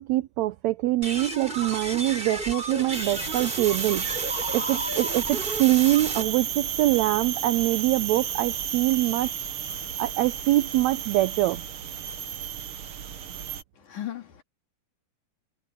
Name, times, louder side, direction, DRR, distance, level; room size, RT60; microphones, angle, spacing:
voice 1, 0.0-9.5 10.0-11.6, right 16 dB, 80° right, 1.6 m, -24 dB
sound 1, 1.0-6.2, right 1 dB, 15° right, 4.8 m, -33 dB
sound 2, 2.9-13.6, right 9 dB, 55° right, 1.8 m, -32 dB
voice 2, 13.8-14.4, left 12 dB, 65° left, 3.6 m, -36 dB
omnidirectional pair, 3.8 m